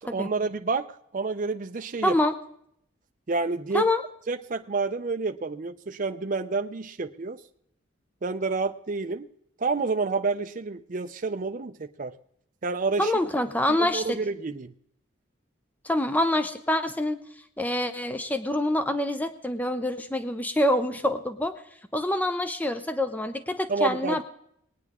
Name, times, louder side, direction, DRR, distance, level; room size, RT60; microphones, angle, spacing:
voice 1, 0.0-2.2 3.3-3.9 4.3-7.4 8.2-9.3 9.6-12.2 12.6-13.1 13.8-14.7 23.7-24.2, right 4 dB, 40° right, 6 dB, 0.5 m, -29 dB
voice 2, 2.0-2.3 3.7-4.0 13.0-14.2 15.8-17.2 17.6-21.5 21.9-24.2, left 1 dB, 10° left, 9 dB, 0.6 m, -26 dB
20.5 x 9.3 x 3.6 m, 0.71 s
head